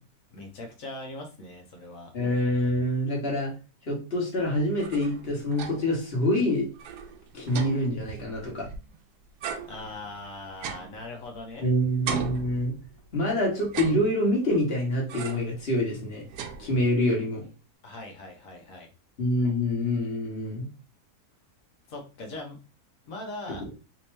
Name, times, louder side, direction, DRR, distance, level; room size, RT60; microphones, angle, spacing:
voice 1, 0.3-2.1 9.7-11.6 17.8-18.9 21.9-22.6 23.1-23.7, left 2 dB, 65° left, 2 dB, 1.3 m, -40 dB
voice 2, 2.1-3.5 3.9-6.7 7.3-8.7 11.6-12.7 13.1-16.2 16.6-17.4 19.2-20.7 23.6-23.7, left 1 dB, 40° left, -2 dB, 1.4 m, -26 dB
sound 1, 4.8-6.0 6.4-6.5 6.7-9.0 9.4-11.6 12.1-13.1 13.6-14.5 15.1-15.6 16.0-17.1, right 6 dB, 90° right, 1.1 m, -38 dB
3.5 x 2.8 x 3.1 m, 0.32 s
omnidirectional pair, 1.7 m